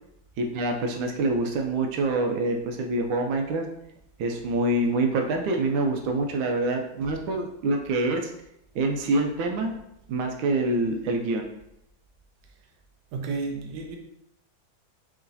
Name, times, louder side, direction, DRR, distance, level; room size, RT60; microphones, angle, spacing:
voice 1, 0.4-3.6 4.2-8.3 8.7-9.7 10.1-11.5, right 2 dB, 85° right, 3 dB, 1.4 m, -26 dB
voice 2, 13.1-14.0, right 4 dB, 70° right, 2 dB, 1.2 m, -32 dB
4.8 x 3.1 x 2.7 m, 0.78 s
omnidirectional pair, 2.2 m